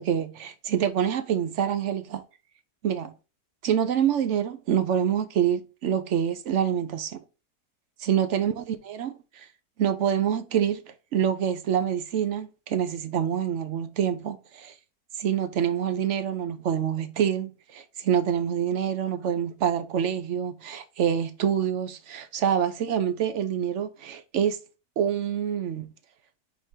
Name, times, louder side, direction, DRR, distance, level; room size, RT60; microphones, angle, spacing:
voice 1, 0.0-2.2 2.8-3.1 3.6-7.2 8.0-9.5 9.8-10.8 11.1-14.7 15.2-24.6 25.0-25.9, right 9 dB, 65° right, 0.8 m, -26 dB
5.0 x 4.3 x 4.3 m
omnidirectional pair, 1.7 m